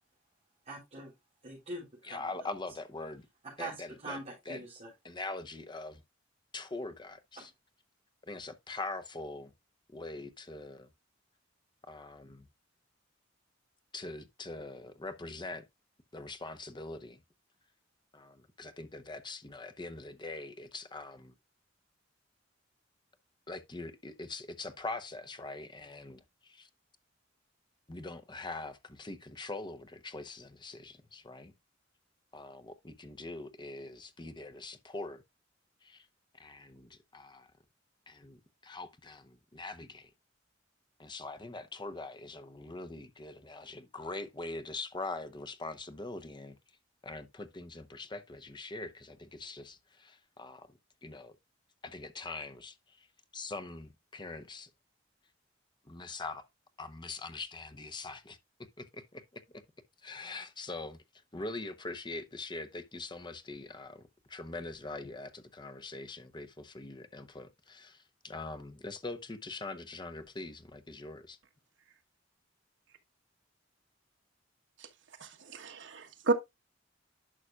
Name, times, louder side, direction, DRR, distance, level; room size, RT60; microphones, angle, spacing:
voice 1, 0.7-1.1 1.4-2.3 3.4-4.9 7.4-7.5, right 2 dB, 35° right, 3.9 m, -43 dB
voice 2, 2.0-3.3 3.6-4.2 4.5-4.6 5.0-6.0 6.5-7.5 8.3-9.5 9.9-10.9 11.9-12.5 13.9-15.6 16.1-17.2 18.1-21.3 23.5-26.7 27.9-31.5 32.3-35.2 35.8-36.1 36.3-37.5 38.1-40.1 41.0-46.6 47.0-50.7 51.0-51.4 51.8-53.1 53.3-54.7 55.8-56.4 56.8-58.4 58.8-59.6 60.0-61.0 61.3-71.4, left 3 dB, 25° left, 0.8 m, -43 dB
voice 3, 75.2-76.3, right 3 dB, 65° right, 1.3 m, -32 dB
11.0 x 5.8 x 2.4 m
head